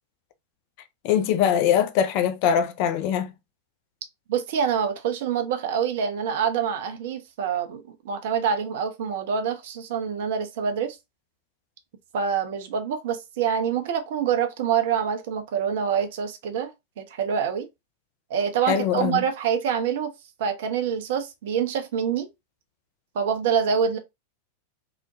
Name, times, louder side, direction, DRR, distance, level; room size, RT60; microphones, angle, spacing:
voice 1, 1.0-3.3 18.7-19.2, left 9 dB, 45° left, 0.3 m, -22 dB
voice 2, 4.3-11.0 12.1-17.7 18.3-20.1 20.4-22.3 23.1-24.0, right 7 dB, 55° right, 0.5 m, -26 dB
2.9 x 2.1 x 2.6 m
figure-of-eight pair, 90°, 0 cm